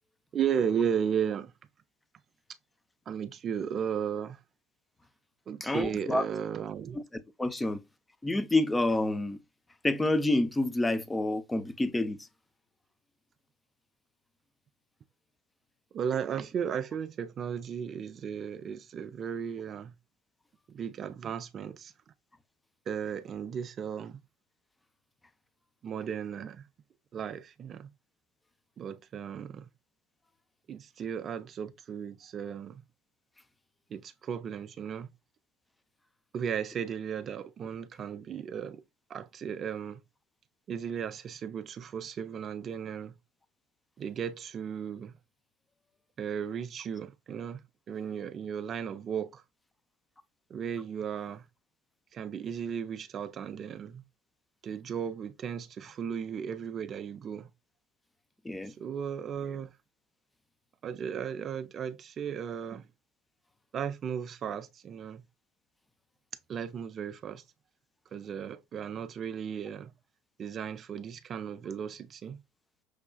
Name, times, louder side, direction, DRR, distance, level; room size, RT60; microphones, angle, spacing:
voice 1, 0.3-1.5 3.1-4.4 5.5-7.0 15.9-19.9 20.7-21.9 22.9-24.2 25.8-26.7 27.1-27.9 28.8-29.7 30.7-32.8 33.9-35.1 36.3-38.8 39.1-40.0 40.7-43.1 44.0-45.1 46.2-49.4 50.5-51.5 52.1-54.0 54.6-57.5 58.7-59.7 60.8-62.9 63.7-65.2 66.5-67.4 68.1-69.9 70.4-72.4, right 8 dB, 40° right, 0.4 m, -35 dB
voice 2, 5.6-6.3 7.4-7.8 8.2-9.4 9.8-12.2 58.4-58.7, left 2 dB, 15° left, 0.6 m, -28 dB
6.3 x 2.3 x 2.2 m
hypercardioid pair, 65°, 0 cm